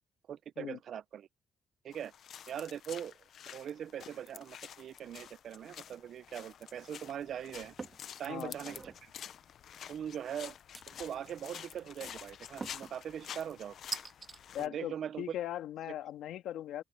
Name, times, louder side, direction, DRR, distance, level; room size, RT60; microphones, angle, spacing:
voice 1, 0.3-1.3 1.8-2.1 2.5-3.1 3.5-7.7 8.2-9.1 9.9-10.5 10.9-13.8 14.6-15.3, right 9 dB, 65° right, 0.7 m, -41 dB
sound 1, 1.9-14.7, left 9 dB, 65° left, 1.0 m, -49 dB
sound 2, 7.8-8.1 8.5-9.0 10.7-11.3 12.6-13.0 13.9-14.4, right 4 dB, 35° right, 1.8 m, -43 dB
voice 2, 14.5-16.8, left 12 dB, 85° left, 2.1 m, -39 dB
open air
cardioid pair, 90°, 0 cm